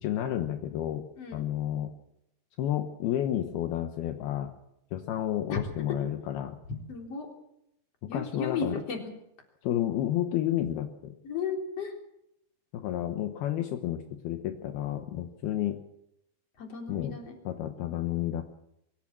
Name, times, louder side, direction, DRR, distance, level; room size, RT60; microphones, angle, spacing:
voice 1, 0.0-1.0 1.3-1.9 2.6-4.5 4.9-6.6 8.1-8.8 9.6-11.1 12.7-15.8 16.9-17.1 17.5-18.4, left 12 dB, 75° left, 6 dB, 3.0 m, -31 dB
voice 2, 6.9-7.3 8.1-9.0 11.2-12.0 16.6-17.4, left 5 dB, 40° left, 2 dB, 4.4 m, -34 dB
23.5 x 15.0 x 7.5 m, 0.80 s
omnidirectional pair, 4.6 m